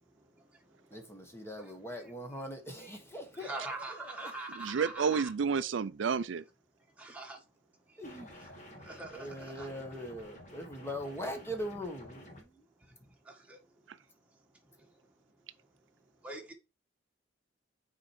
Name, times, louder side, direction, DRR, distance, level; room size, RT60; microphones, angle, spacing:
voice 1, 0.9-3.7 4.0-4.3 8.0-8.5 9.1-12.6, equal, 15° left, 1.4 m, -41 dB
voice 2, 3.4-5.3 7.0-7.4 8.9-9.2 9.6-9.7 16.2-16.5, right 2 dB, 5° right, 1.7 m, -41 dB
voice 3, 4.6-6.4, right 6 dB, 65° right, 0.4 m, -30 dB
sound 1, 8.0-12.4, left 1 dB, 40° left, 2.5 m, -51 dB
6.4 x 4.4 x 4.6 m
head